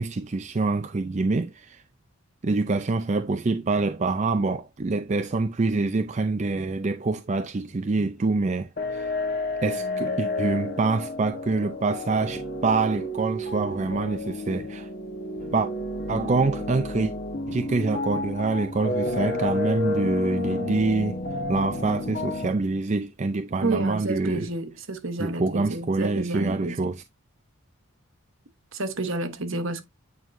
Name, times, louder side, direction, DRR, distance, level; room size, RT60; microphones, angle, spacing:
voice 1, 0.0-1.8 2.4-9.1 9.6-14.9 15.5-15.7 16.1-17.1 17.5-21.2 21.5-24.5 25.2-27.0, right 3 dB, 30° right, 0.4 m, -26 dB
sound 1, 8.8-22.5, left 2 dB, 45° left, 1.2 m, -31 dB
voice 2, 23.6-26.9 28.7-29.8, right 2 dB, 65° right, 1.1 m, -30 dB
9.0 x 4.6 x 2.6 m
head